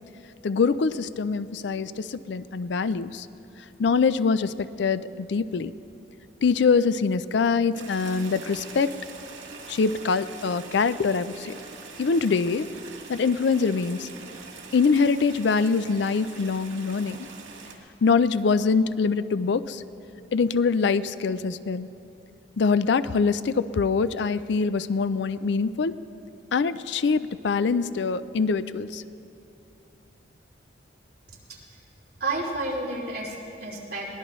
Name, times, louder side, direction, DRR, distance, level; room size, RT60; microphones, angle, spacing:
voice 1, 0.4-3.3 3.8-5.7 6.4-8.9 9.7-11.5 12.0-12.7 13.1-14.1 14.7-17.3 18.0-19.8 20.3-21.9 22.6-26.0 26.5-29.0, left 5 dB, 65° left, 15 dB, 0.4 m, -24 dB
sound 1, 7.7-17.7, right 4 dB, 90° right, 2.0 m, -43 dB
voice 2, 32.2-34.2, right 2 dB, 50° right, -4 dB, 2.9 m, -31 dB
22.5 x 18.0 x 3.1 m, 2.8 s
head